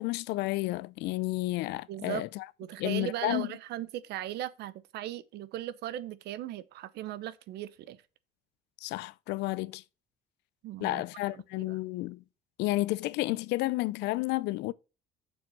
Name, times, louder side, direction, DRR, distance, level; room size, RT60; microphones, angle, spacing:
voice 1, 0.0-2.4 2.8-3.5 8.8-9.8 10.8-12.2 12.6-14.7, left 19 dB, 85° left, 0.5 m, -31 dB
voice 2, 1.9-2.2 2.6-8.0 10.6-11.0 11.3-11.8, right 13 dB, 75° right, 0.8 m, -38 dB
7.2 x 6.3 x 6.2 m
cardioid pair, 110°, 17 cm